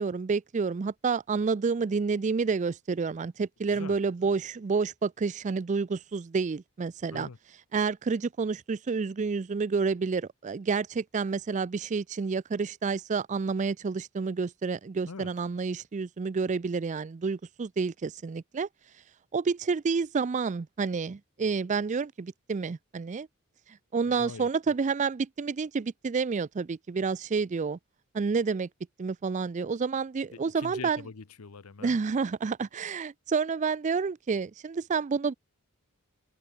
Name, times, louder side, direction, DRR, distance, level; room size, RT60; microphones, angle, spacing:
voice 1, 0.0-7.3 7.7-18.7 19.3-23.3 23.9-27.8 28.1-28.7 29.0-31.0 31.8-35.3, right 5 dB, 35° right, 0.4 m, -29 dB
voice 2, 24.1-24.5 30.3-32.0, left 4 dB, 85° left, 0.8 m, -43 dB
head